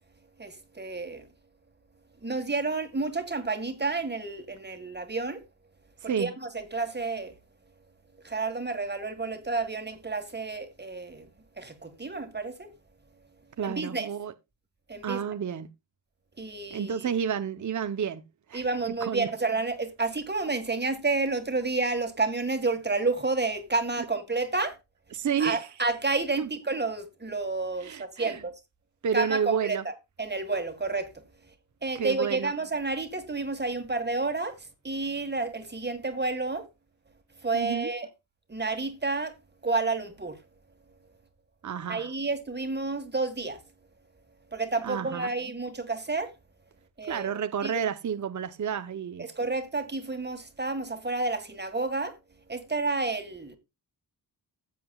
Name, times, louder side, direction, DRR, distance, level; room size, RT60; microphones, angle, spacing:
voice 1, 0.4-1.3 2.2-5.4 6.0-7.4 8.2-11.3 11.6-12.7 13.6-14.1 14.9-15.2 16.4-17.1 18.5-24.8 25.4-28.5 29.1-31.2 31.8-36.7 37.4-38.1 38.5-39.3 39.6-40.4 41.9-43.6 44.5-46.3 47.0-47.3 47.6-47.7 49.2-52.2 52.5-53.6, right 3 dB, 25° right, 1.9 m, -30 dB
voice 2, 13.6-14.3 15.0-15.7 16.7-18.2 18.5-18.7 19.0-19.3 25.1-25.7 26.4-26.5 27.8-28.4 29.0-29.8 31.9-32.5 37.5-37.9 41.6-42.1 44.8-45.3 47.1-49.3, right 7 dB, 45° right, 0.9 m, -30 dB
15.5 x 7.6 x 2.3 m
cardioid pair, 85°, 41 cm